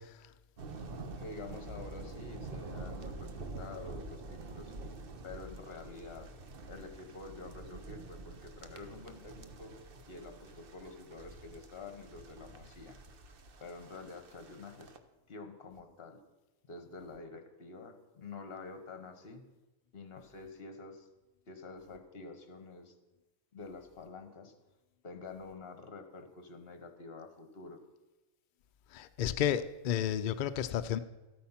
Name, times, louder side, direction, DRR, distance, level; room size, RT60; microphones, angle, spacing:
sound 1, 0.6-15.0, right 3 dB, 50° right, 0.9 m, -47 dB
voice 1, 1.2-4.7 5.2-6.3 6.7-9.7 10.1-13.0 13.6-14.9 15.3-16.2 16.7-19.5 19.9-21.1 21.5-22.9 23.5-24.5 25.0-27.8, left 3 dB, 50° left, 7 dB, 1.4 m, -48 dB
voice 2, 28.9-31.0, left 10 dB, 75° left, 10 dB, 0.4 m, -31 dB
13.0 x 8.6 x 5.7 m, 1.1 s
omnidirectional pair, 1.4 m